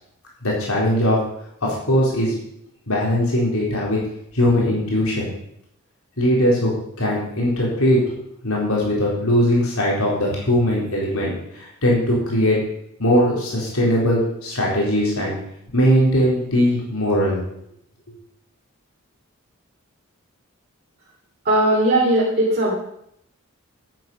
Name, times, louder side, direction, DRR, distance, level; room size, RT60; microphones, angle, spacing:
voice 1, 0.4-1.2 1.6-2.3 2.9-4.0 4.3-5.3 6.2-6.7 7.0-8.0 8.4-12.6 13.0-15.4 15.7-17.4, equal, 90° left, -4 dB, 4.1 m, -20 dB
voice 2, 21.4-22.7, right 1 dB, 45° right, -5 dB, 2.9 m, -18 dB
10.5 x 8.6 x 6.2 m, 0.77 s
head